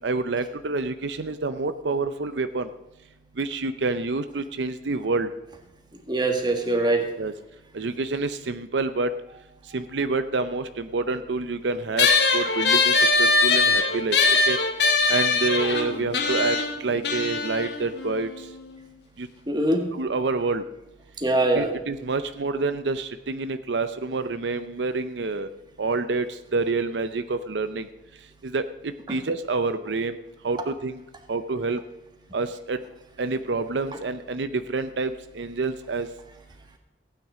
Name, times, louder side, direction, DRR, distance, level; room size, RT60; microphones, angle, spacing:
voice 1, 0.0-2.7 3.4-5.3 7.2-7.3 7.7-9.1 9.7-14.6 15.1-18.3 19.2-19.3 19.9-20.6 21.5-25.5 25.8-27.9 28.4-30.2 30.4-31.0 31.3-31.8 32.3-32.8 33.2-36.1, right 3 dB, 90° right, 10 dB, 0.7 m, -27 dB
voice 2, 6.1-7.1 19.5-19.9 21.2-21.7 29.1-29.2, right 2 dB, 25° right, 4 dB, 1.7 m, -23 dB
sound 1, 12.0-18.8, left 4 dB, 70° left, 1.4 m, -22 dB
15.5 x 9.2 x 5.0 m, 0.94 s
head